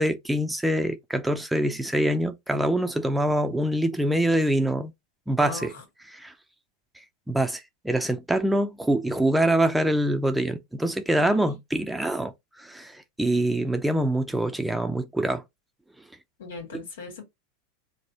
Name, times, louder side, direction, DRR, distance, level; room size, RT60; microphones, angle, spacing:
voice 1, 0.0-4.9 5.3-5.7 6.1-6.3 7.3-15.4 16.7-16.8, right 1 dB, 5° right, 0.5 m, -25 dB
voice 2, 5.4-5.8 11.2-11.5 16.4-17.2, left 4 dB, 85° left, 1.6 m, -38 dB
3.3 x 2.1 x 4.0 m
hypercardioid pair, 110°, 0 cm